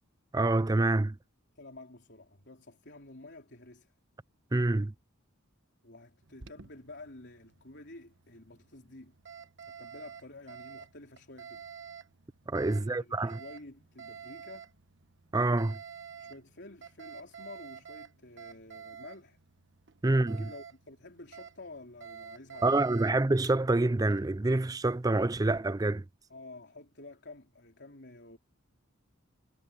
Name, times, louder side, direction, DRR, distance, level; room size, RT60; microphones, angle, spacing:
voice 1, 0.3-1.2 4.5-4.9 12.5-13.4 15.3-15.8 20.0-20.5 22.6-26.0, right 2 dB, 15° right, 0.4 m, -27 dB
voice 2, 1.6-3.9 5.8-9.1 9.7-11.7 12.7-14.7 16.2-19.4 20.1-23.2 26.3-28.4, left 2 dB, 50° left, 3.9 m, -50 dB
Alarm, 6.2-25.6, right 7 dB, 55° right, 1.3 m, -50 dB
head